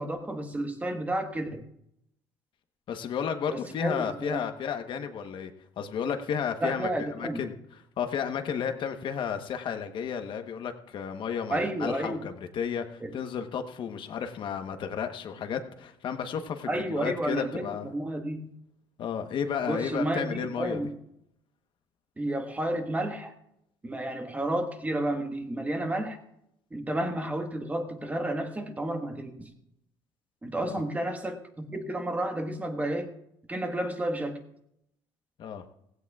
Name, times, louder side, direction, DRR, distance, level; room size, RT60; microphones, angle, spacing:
voice 1, 0.0-1.6 3.5-4.5 6.6-7.4 11.5-12.3 13.0-13.1 16.7-18.4 19.7-20.9 22.2-23.3 23.8-26.2 26.7-29.5 30.4-33.1 33.5-34.4, right 1 dB, 15° right, 6 dB, 1.4 m, -31 dB
voice 2, 2.9-5.5 5.8-6.9 7.1-7.5 8.0-17.9 19.0-20.8 30.6-30.8 35.4-35.6, left 7 dB, 55° left, 7 dB, 1.1 m, -32 dB
16.5 x 16.0 x 2.4 m, 0.78 s
cardioid pair, 110°, 10 cm